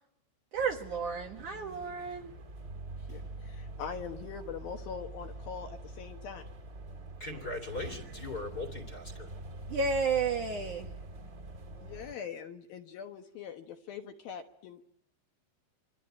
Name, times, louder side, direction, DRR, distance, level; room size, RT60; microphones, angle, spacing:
sound 1, 0.5-12.1, right 2 dB, 25° right, 2.4 m, -45 dB
voice 1, 0.5-2.3 9.7-10.9, right 5 dB, 55° right, 3 dB, 2.5 m, -32 dB
voice 2, 3.0-6.5 11.7-14.8, left 7 dB, 65° left, 4 dB, 2.7 m, -42 dB
voice 3, 7.2-9.3, left 2 dB, 30° left, 8 dB, 2.3 m, -39 dB
28.0 x 24.0 x 8.8 m, 0.77 s
omnidirectional pair, 5.2 m